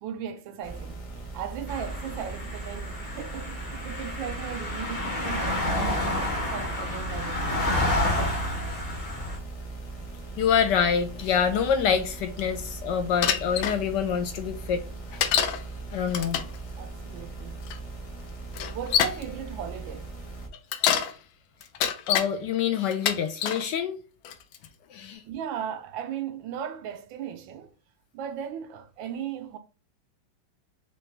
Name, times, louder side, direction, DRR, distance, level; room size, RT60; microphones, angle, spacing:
voice 1, 0.0-1.0 1.3-7.8 16.2-16.4 16.7-17.6 18.7-20.1 25.2-27.7 28.1-29.6, right 8 dB, 80° right, 1.3 m, -37 dB
sound 1, 0.6-20.5, right 3 dB, 55° left, 0.3 m, -39 dB
sound 2, 1.7-9.4, left 1 dB, 25° left, 1.0 m, -29 dB
voice 2, 10.4-14.8 15.1-15.2 15.9-16.4 22.1-24.0 24.9-25.2, left 7 dB, 70° left, 1.1 m, -26 dB
Bicycle, 13.2-13.8 15.2-15.6 16.1-16.6 17.7-17.8 18.5-19.2 20.5-21.1 21.6-22.3 22.9-23.6 24.3-24.7, left 8 dB, 90° left, 1.5 m, -25 dB
3.9 x 3.4 x 3.2 m
omnidirectional pair, 2.2 m